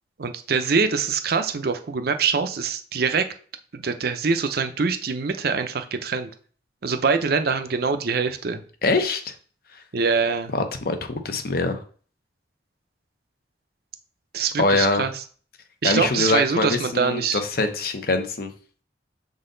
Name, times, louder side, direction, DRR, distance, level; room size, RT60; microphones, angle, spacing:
voice 1, 0.2-3.3 3.7-6.3 6.8-8.6 9.9-10.5 14.3-15.1 15.8-17.4, right 5 dB, 55° right, 8 dB, 0.6 m, -24 dB
voice 2, 8.8-9.3 10.5-11.8 14.6-15.0 15.8-18.5, left 3 dB, 55° left, 7 dB, 0.8 m, -23 dB
6.4 x 3.9 x 3.9 m, 0.43 s
head